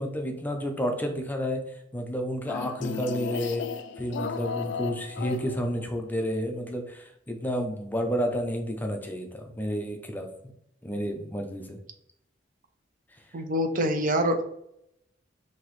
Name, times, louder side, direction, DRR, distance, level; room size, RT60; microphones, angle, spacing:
voice 1, 0.0-1.6 1.9-3.7 4.0-10.3 10.8-11.8, equal, 10° left, 3 dB, 0.5 m, -30 dB
sound 1, 2.5-6.0, left 6 dB, 65° left, 0.3 m, -35 dB
voice 2, 13.3-14.4, equal, 45° right, 6 dB, 0.6 m, -25 dB
5.8 x 2.8 x 3.1 m, 0.74 s
head